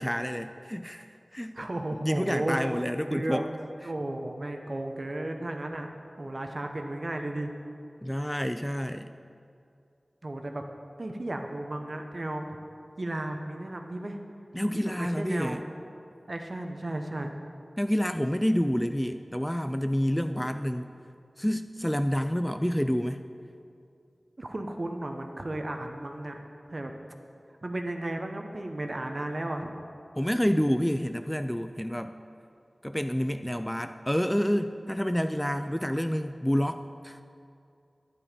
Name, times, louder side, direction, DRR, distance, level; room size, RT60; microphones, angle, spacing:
voice 1, 0.0-1.7 2.0-3.5 8.0-9.1 14.5-15.6 17.8-20.9 21.4-23.2 30.2-32.1 32.8-37.2, equal, 5° left, 9 dB, 0.4 m, -28 dB
voice 2, 1.5-2.7 3.1-3.5 3.8-5.9 6.2-7.5 10.2-10.6 11.0-12.6 13.0-14.2 14.7-15.6 16.3-17.3 20.3-20.5 24.4-26.4 26.7-26.9 27.6-29.7, right 1 dB, 50° right, 4 dB, 1.0 m, -34 dB
11.0 x 9.5 x 5.2 m, 2.5 s
wide cardioid pair, 65°, 0 cm